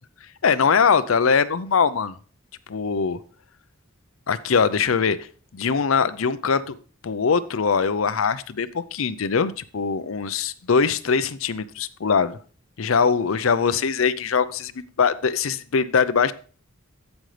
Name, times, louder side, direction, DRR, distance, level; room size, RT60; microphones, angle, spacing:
voice 1, 0.4-2.2 2.7-3.2 4.3-5.2 5.5-6.8 7.0-12.4 12.8-16.3, left 5 dB, 75° left, 0.6 m, -22 dB
15.5 x 5.3 x 3.3 m
head